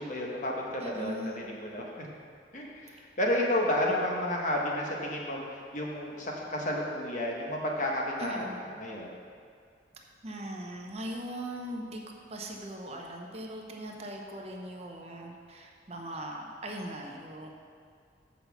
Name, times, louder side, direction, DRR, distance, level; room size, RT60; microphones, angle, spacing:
voice 1, 0.0-2.1 2.5-8.5 8.8-9.1, left 1 dB, 45° left, -2 dB, 1.2 m, -31 dB
voice 2, 0.8-1.5 8.2-8.7 10.2-12.0 12.3-17.5, right 1 dB, 35° right, 1 dB, 0.7 m, -40 dB
6.1 x 5.5 x 7.1 m, 2.2 s
head